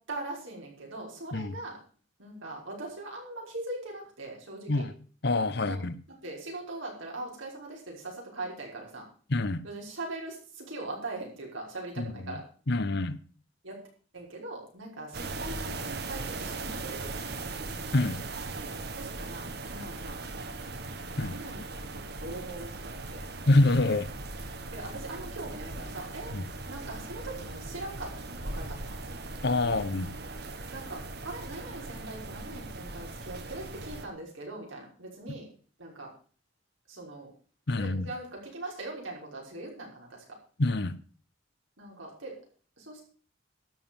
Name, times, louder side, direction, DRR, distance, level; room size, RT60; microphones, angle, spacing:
voice 1, 0.1-1.8 2.2-4.9 5.6-5.8 6.2-9.1 9.6-12.4 13.6-13.8 14.1-17.5 18.9-20.5 21.2-23.3 24.7-26.4 26.7-29.0 29.6-29.8 30.7-35.5 35.8-36.1 36.9-37.3 37.8-40.4 41.8-42.4 42.8-43.0, right 2 dB, 85° right, 5.9 m, -41 dB
voice 2, 5.2-6.0 9.3-9.6 12.0-12.4 12.7-13.2 17.9-18.2 21.2-21.3 23.5-24.1 26.3-26.4 29.4-30.1 37.7-38.1 40.6-40.9, left 2 dB, 55° left, 1.0 m, -26 dB
sound 1, 15.1-34.1, right 2 dB, 55° right, 1.4 m, -39 dB
12.5 x 7.5 x 7.4 m
head